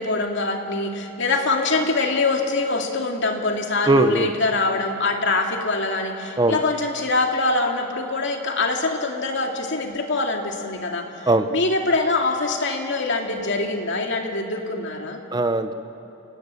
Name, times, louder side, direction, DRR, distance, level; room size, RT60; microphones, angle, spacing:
voice 1, 0.0-15.2, left 3 dB, 60° left, 2 dB, 2.5 m, -24 dB
voice 2, 3.9-4.3 6.4-6.6 11.3-11.5 15.3-15.7, right 1 dB, 20° right, 10 dB, 0.9 m, -19 dB
28.5 x 19.0 x 8.3 m, 3.0 s
head